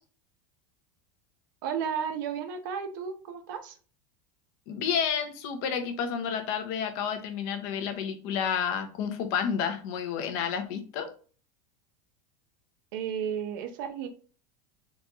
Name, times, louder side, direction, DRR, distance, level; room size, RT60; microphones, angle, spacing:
voice 1, 1.6-3.8 12.9-14.1, right 7 dB, 70° right, 8 dB, 0.7 m, -33 dB
voice 2, 4.7-11.1, left 7 dB, 55° left, 7 dB, 0.7 m, -30 dB
3.9 x 2.4 x 2.9 m, 0.39 s
supercardioid pair, 155°, 11 cm